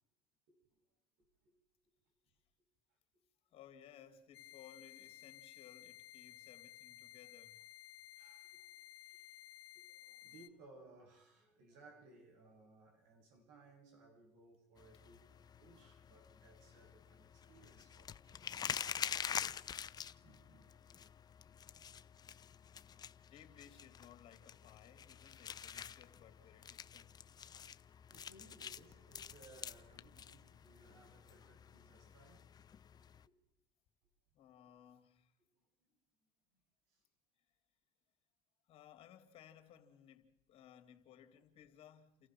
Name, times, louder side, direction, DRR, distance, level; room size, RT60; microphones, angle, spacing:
voice 1, 3.5-7.6 23.3-27.3 34.3-35.4 38.7-42.3, left 9 dB, 50° left, 3.0 m, -60 dB
sound 1, 4.3-10.5, left 12 dB, 90° left, 1.0 m, -56 dB
voice 2, 8.2-8.8 9.1-9.2 9.9-18.5 20.2-20.7 21.0-21.1 21.7-21.8 28.1-32.5 36.9-37.0, right 2 dB, 75° right, 7.7 m, -63 dB
sound 2, 14.8-33.3, left 8 dB, 35° left, 0.7 m, -47 dB
29.5 x 14.5 x 6.1 m
supercardioid pair, 90°, 12 cm